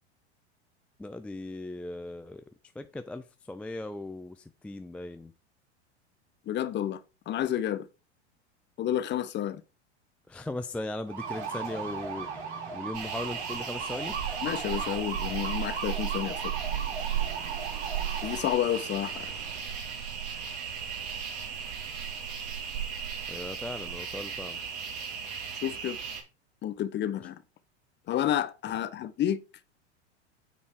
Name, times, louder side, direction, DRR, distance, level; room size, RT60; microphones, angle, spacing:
voice 1, 1.0-2.4 2.8-5.3 10.3-14.2 23.3-24.6 27.2-27.3, left 2 dB, 5° left, 0.4 m, -38 dB
voice 2, 6.5-7.0 7.3-7.9 8.8-9.6 14.4-16.4 18.2-19.3 25.6-26.0 26.6-27.4 28.1-29.4, left 11 dB, 30° left, 1.0 m, -30 dB
sound 1, 11.1-19.6, right 5 dB, 70° right, 3.0 m, -38 dB
sound 2, 12.9-26.2, right 8 dB, 50° right, 3.0 m, -35 dB
9.1 x 4.3 x 4.7 m
hypercardioid pair, 95°, 34 cm